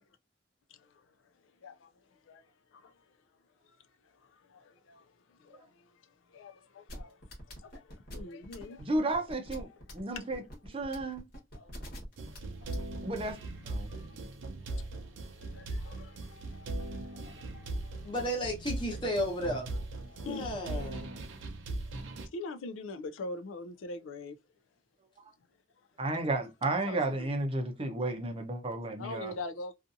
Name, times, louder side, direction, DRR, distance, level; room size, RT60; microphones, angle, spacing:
voice 1, 0.7-1.1 1.4-3.2 3.6-3.8 4.0-7.2 7.5-8.9 9.7-10.3 11.6-11.9 12.6-13.1 13.8-14.2 14.6-18.1 20.1-20.6 22.0-24.4 26.8-27.3 29.0-29.7, left 3 dB, 90° left, 0.4 m, -45 dB
sound 1, 6.9-13.3, equal, 50° left, 1.1 m, -45 dB
voice 2, 8.8-9.7 9.9-10.4 10.7-11.3 13.0-13.4 13.6-13.9 26.0-29.3, right 2 dB, 30° right, 0.6 m, -32 dB
sound 2, 12.2-22.3, right 2 dB, 80° right, 0.6 m, -39 dB
voice 3, 18.0-19.7 20.2-21.1, equal, 25° left, 1.0 m, -33 dB
2.7 x 2.4 x 2.4 m
head